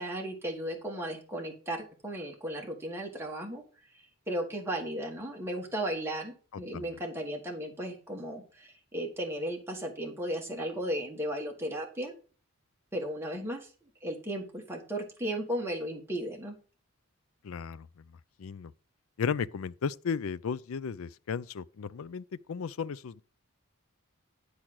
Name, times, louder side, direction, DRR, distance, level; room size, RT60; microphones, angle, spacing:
voice 1, 0.0-3.6 3.9-12.1 12.9-13.7 14.0-16.5, right 1 dB, 10° right, 1.5 m, -35 dB
voice 2, 17.4-17.9 18.4-18.7 19.2-23.2, left 6 dB, 65° left, 0.4 m, -34 dB
10.0 x 4.9 x 6.1 m
head